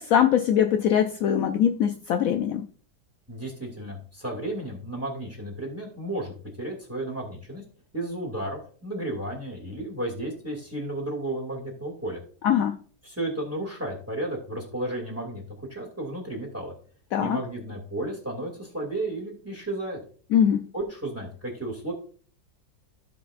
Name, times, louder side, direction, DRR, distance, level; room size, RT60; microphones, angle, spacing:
voice 1, 0.0-2.6 12.4-12.8 17.1-17.4 20.3-20.7, left 9 dB, 80° left, 7 dB, 0.8 m, -22 dB
voice 2, 3.3-7.6 7.9-12.2 13.0-16.7 17.2-20.0 20.7-21.9, right 1 dB, 10° right, -1 dB, 2.4 m, -33 dB
15.5 x 5.1 x 2.5 m, 0.44 s
omnidirectional pair, 2.0 m